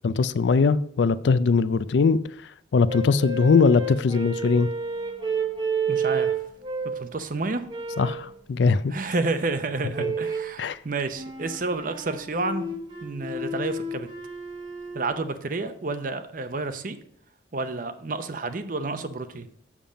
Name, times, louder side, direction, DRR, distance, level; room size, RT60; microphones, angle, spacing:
voice 1, 0.0-4.7 8.0-9.0 10.0-10.1 10.6-10.8, left 4 dB, 70° left, 15 dB, 0.4 m, -21 dB
sound 1, 2.9-7.1 7.7-8.3 9.9-10.6 11.1-15.1, right 4 dB, 25° right, 1.0 m, -30 dB
voice 2, 5.9-6.4 6.8-7.7 8.9-12.8 13.0-14.1 14.9-17.0 17.5-19.5, right 3 dB, 45° right, 10 dB, 0.7 m, -30 dB
7.4 x 7.0 x 5.1 m, 0.67 s
head